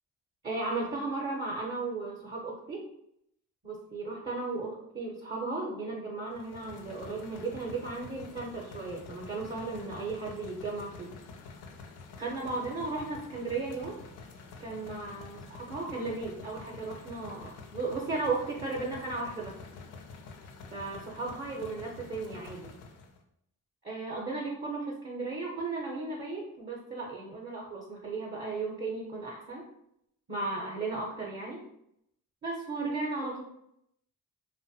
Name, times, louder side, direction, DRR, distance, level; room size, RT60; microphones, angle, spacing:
voice 1, 0.4-2.9 3.6-11.1 12.2-14.0 14.6-19.6 20.7-22.7 23.8-29.7 30.3-31.6 32.4-33.4, right 3 dB, 30° right, -3 dB, 0.6 m, -35 dB
sound 1, 6.3-23.2, left 4 dB, 80° left, 0.5 m, -48 dB
2.5 x 2.1 x 2.6 m, 0.75 s
cardioid pair, 60°, 38 cm